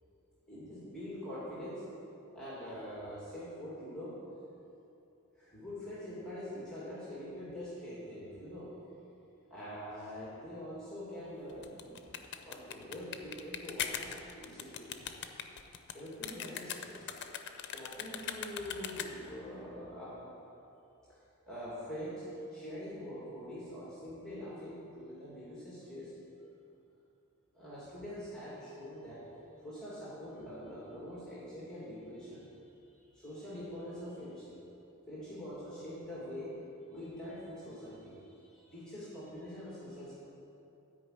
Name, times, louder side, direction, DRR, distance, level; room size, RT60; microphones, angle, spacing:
voice 1, 0.5-1.8 2.3-4.2 5.4-8.7 9.5-12.0 12.4-15.1 15.9-17.1 17.7-20.3 21.1-26.1 27.5-29.3 29.6-32.5 32.9-34.6 35.1-40.2, equal, 5° left, -9 dB, 2.4 m, -44 dB
sound 1, 11.5-19.4, left 8 dB, 55° left, 0.6 m, -41 dB
12.5 x 5.3 x 7.9 m, 2.8 s
head